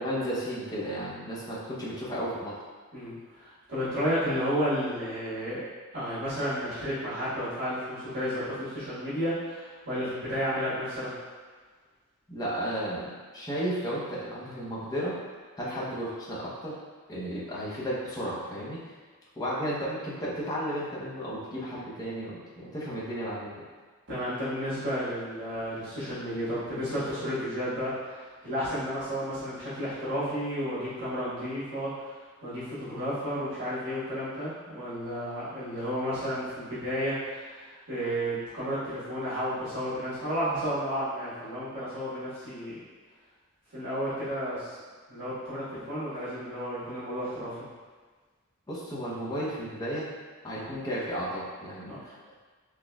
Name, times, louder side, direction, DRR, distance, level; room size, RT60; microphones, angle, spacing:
voice 1, 0.0-2.5 12.3-15.1 15.6-16.8 17.1-18.9 19.4-23.7 48.7-50.1 50.4-52.4, equal, 15° left, -7 dB, 0.6 m, -33 dB
voice 2, 2.9-5.6 5.9-11.1 15.6-15.8 24.1-32.1 32.4-42.7 43.7-44.8 45.1-47.6 50.5-50.6 51.9-52.0, equal, 50° right, -13 dB, 1.4 m, -32 dB
4.1 x 2.9 x 2.2 m, 1.5 s
head